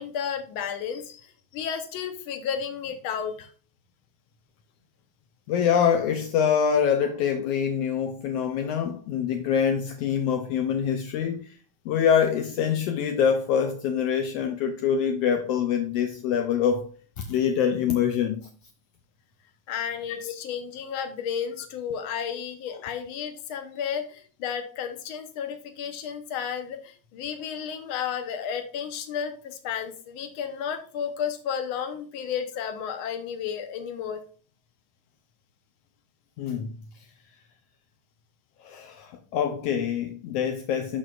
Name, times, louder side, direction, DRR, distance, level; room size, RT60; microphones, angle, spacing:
voice 1, 0.0-3.5 19.7-34.2, left 8 dB, 65° left, 1.4 m, -32 dB
voice 2, 5.5-11.6 11.8-16.9 17.2-18.5 36.4-36.7 38.6-41.0, left 8 dB, 80° left, 1.4 m, -25 dB
12.0 x 4.1 x 2.4 m
omnidirectional pair, 3.3 m